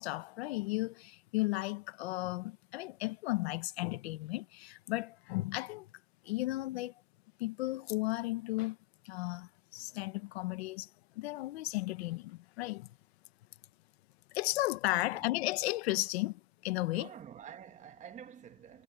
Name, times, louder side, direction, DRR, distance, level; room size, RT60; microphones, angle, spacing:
voice 1, 0.0-5.9 6.3-6.9 7.4-8.8 9.0-10.9 11.2-12.9 14.3-17.1, left 19 dB, 85° left, 1.1 m, -34 dB
voice 2, 14.9-15.3 16.9-18.8, right 9 dB, 25° right, 1.2 m, -49 dB
supercardioid pair, 150°, 31 cm